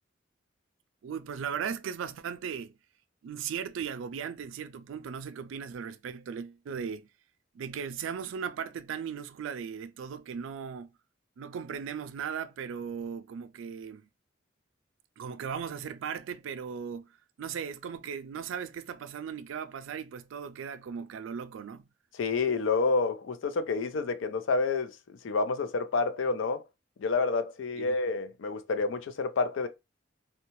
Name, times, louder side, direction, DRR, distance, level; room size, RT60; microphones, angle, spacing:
voice 1, 1.0-2.7 3.2-7.1 7.5-10.9 11.4-14.1 15.2-17.1 17.4-21.8 27.8-28.0, right 7 dB, 85° right, 0.3 m, -37 dB
voice 2, 22.2-26.6 27.0-29.7, left 4 dB, 85° left, 0.4 m, -29 dB
2.7 x 2.2 x 2.9 m
head